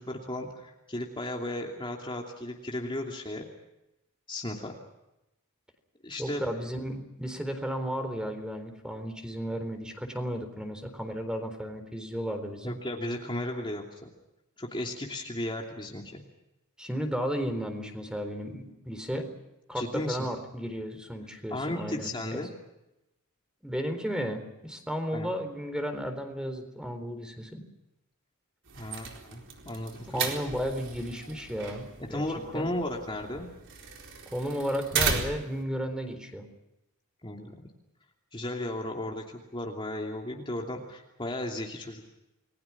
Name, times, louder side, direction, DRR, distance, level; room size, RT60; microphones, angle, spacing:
voice 1, 0.0-3.5 4.3-4.7 6.0-6.4 12.6-14.1 14.6-16.2 19.7-20.3 21.5-22.5 25.1-25.3 28.7-30.2 32.0-33.5 37.2-37.6 38.3-42.1, left 1 dB, 25° left, 0 dB, 2.9 m, -35 dB
voice 2, 6.2-12.8 16.8-19.3 19.7-22.4 23.6-27.6 30.1-32.2 32.5-32.7 34.3-36.5, equal, 5° right, 7 dB, 4.0 m, -34 dB
sound 1, 28.7-35.6, right 5 dB, 60° right, 4.2 m, -35 dB
30.0 x 21.0 x 5.9 m, 0.90 s
head